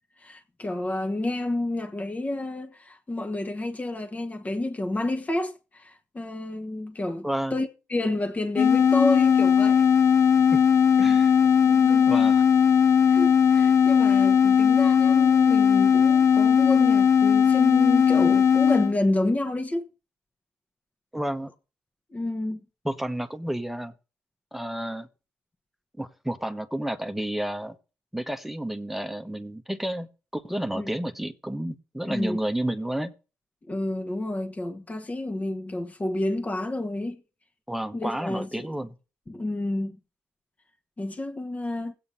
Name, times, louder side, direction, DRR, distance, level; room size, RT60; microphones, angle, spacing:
voice 1, 0.2-9.9 11.6-12.1 13.1-19.8 22.1-22.6 30.7-30.9 32.1-32.4 33.7-37.2 37.9-38.7 39.3-40.0 41.0-41.9, left 1 dB, 25° left, 1.4 m, -30 dB
voice 2, 7.2-7.6 10.5-10.6 11.0-11.3 12.0-12.4 21.1-21.5 22.8-23.9 24.5-25.1 26.0-27.7 28.1-30.1 30.3-33.1 37.7-38.9, right 1 dB, 5° right, 1.1 m, -31 dB
sound 1, 8.6-18.9, left 7 dB, 50° left, 0.5 m, -18 dB
16.0 x 8.6 x 2.7 m
supercardioid pair, 70°, 6 cm